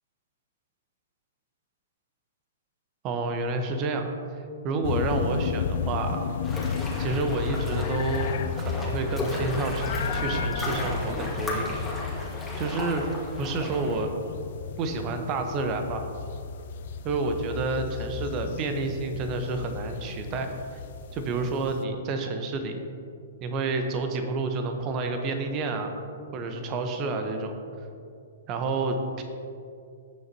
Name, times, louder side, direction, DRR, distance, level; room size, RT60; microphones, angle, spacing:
voice 1, 3.0-4.1 4.6-6.2 7.0-12.3 12.6-13.0 13.4-14.1 14.8-16.0 17.0-20.5 21.1-22.8 23.4-26.0 26.3-27.6 28.5-29.2, right 3 dB, 30° right, 6 dB, 1.1 m, -29 dB
sound 1, 4.8-21.8, left 7 dB, 55° left, 0.5 m, -33 dB
sound 2, 6.4-14.0, left 1 dB, 10° left, 2.2 m, -34 dB
17.0 x 6.7 x 3.0 m, 2.5 s
figure-of-eight pair, 115°, 0 cm